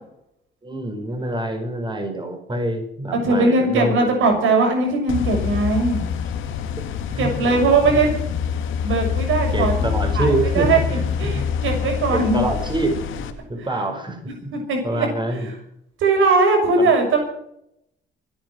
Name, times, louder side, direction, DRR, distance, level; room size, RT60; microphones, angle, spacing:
voice 1, 0.6-4.1 6.8-8.0 9.5-11.4 12.1-13.0 13.5-14.5 14.8-15.5 16.8-16.9, right 2 dB, 25° right, 4 dB, 4.9 m, -26 dB
voice 2, 3.1-6.0 7.2-8.1 8.8-10.8 11.2-12.5 14.5-15.5 16.0-17.2, right 3 dB, 80° right, 3 dB, 6.4 m, -20 dB
sound 1, 5.1-13.3, left 7 dB, 85° left, 2.3 m, -25 dB
25.0 x 9.0 x 6.2 m, 0.77 s
cardioid pair, 90°, 20 cm